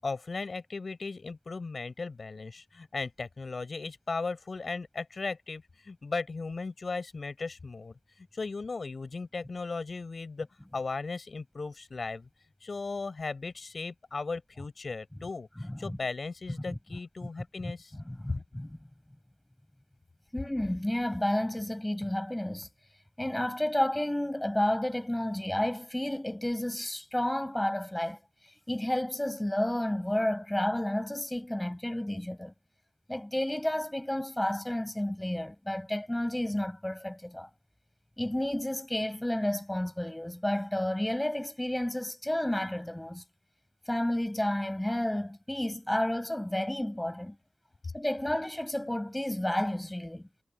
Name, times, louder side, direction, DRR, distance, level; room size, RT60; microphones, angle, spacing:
voice 1, 0.0-8.0 8.3-10.5 10.7-12.3 12.6-17.9, left 4 dB, 65° left, 7.9 m, -37 dB
voice 2, 18.1-18.8 20.3-22.7 23.2-28.2 28.7-32.5 33.1-37.5 38.2-43.2 43.9-47.4 47.9-50.3, left 1 dB, 15° left, 7.6 m, -31 dB
cardioid pair, 40°, 0 cm